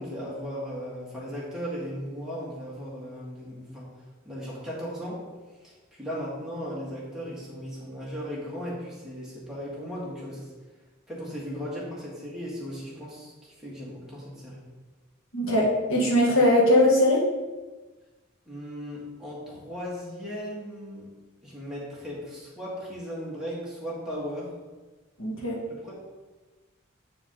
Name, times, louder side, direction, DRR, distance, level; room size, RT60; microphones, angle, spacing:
voice 1, 0.0-3.9 4.2-5.2 5.6-10.5 11.1-14.6 18.5-21.1 21.4-24.5 25.7-25.9, equal, 5° right, -7 dB, 1.8 m, -37 dB
voice 2, 15.3-17.2 25.2-25.6, left 1 dB, 75° left, -3 dB, 1.6 m, -21 dB
8.4 x 4.9 x 3.8 m, 1.2 s
head